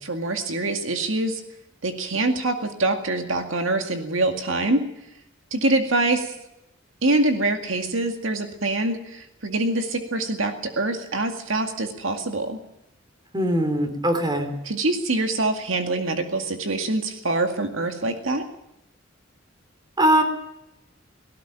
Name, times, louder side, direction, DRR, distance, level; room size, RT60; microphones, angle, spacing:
voice 1, 0.0-1.4 1.8-4.9 5.5-6.3 7.0-12.6 14.6-18.5, right 2 dB, 70° right, 5 dB, 2.1 m, -24 dB
voice 2, 13.3-14.5 20.0-20.2, right 1 dB, 20° right, 8 dB, 3.2 m, -21 dB
18.5 x 17.5 x 9.0 m, 0.84 s
head